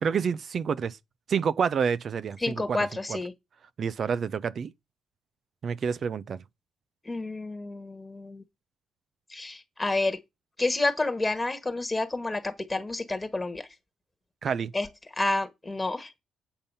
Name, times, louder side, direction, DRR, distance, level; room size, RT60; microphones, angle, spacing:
voice 1, 0.0-1.0 1.3-3.2 3.8-4.7 5.6-6.4 14.4-14.7, right 6 dB, 50° right, 0.5 m, -28 dB
voice 2, 2.4-3.3 7.1-8.4 9.3-10.2 10.6-13.7 14.7-14.9 15.2-16.1, left 2 dB, 15° left, 1.4 m, -29 dB
8.8 x 5.3 x 5.5 m
cardioid pair, 90°, 0 cm